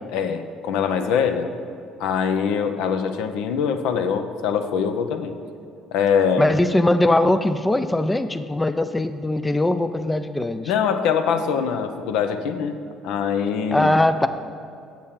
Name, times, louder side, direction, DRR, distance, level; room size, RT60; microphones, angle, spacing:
voice 1, 0.1-1.5 2.0-5.3 5.9-6.5 10.7-12.7 13.0-14.0, left 7 dB, 65° left, 8 dB, 0.5 m, -23 dB
voice 2, 6.4-10.7 13.7-14.3, left 1 dB, 10° left, 10 dB, 0.4 m, -20 dB
8.3 x 7.5 x 4.3 m, 2.5 s
figure-of-eight pair, 50°, 0 cm